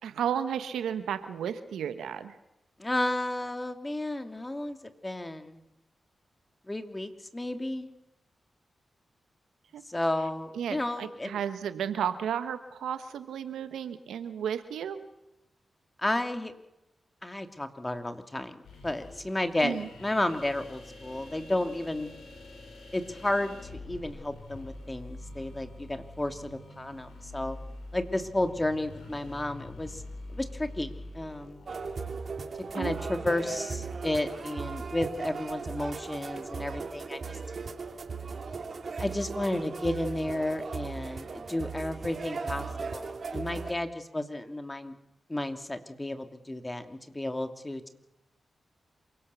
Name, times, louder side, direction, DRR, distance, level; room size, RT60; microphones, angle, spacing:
voice 1, 0.0-2.4 9.7-9.8 10.5-15.0 19.6-19.9 32.7-33.0, right 8 dB, 85° right, 11 dB, 1.3 m, -33 dB
voice 2, 2.8-4.8 5.0-5.6 6.7-7.9 9.9-11.4 16.0-16.5 17.2-22.1 22.9-27.6 27.9-30.0 30.3-31.6 32.7-37.4 39.0-44.9 45.3-47.9, left 1 dB, 20° left, 8 dB, 2.9 m, -32 dB
sound 1, 18.6-32.2, left 2 dB, 85° left, 5.5 m, -46 dB
sound 2, 31.7-43.7, right 4 dB, 60° right, 2.9 m, -37 dB
27.5 x 18.0 x 7.1 m, 0.89 s
supercardioid pair, 40°, 0 cm